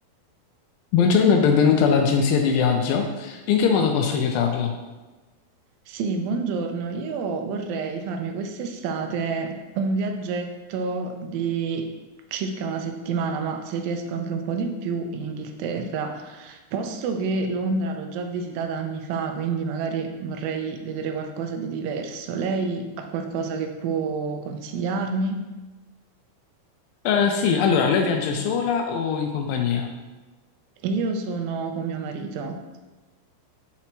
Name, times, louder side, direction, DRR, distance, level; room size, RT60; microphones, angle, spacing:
voice 1, 0.9-4.7 27.1-29.9, left 6 dB, 80° left, 4 dB, 2.2 m, -21 dB
voice 2, 5.9-11.9 12.3-25.4 30.8-32.6, right 4 dB, 80° right, 5 dB, 2.2 m, -28 dB
5.9 x 4.2 x 4.4 m, 1.2 s
omnidirectional pair, 4.3 m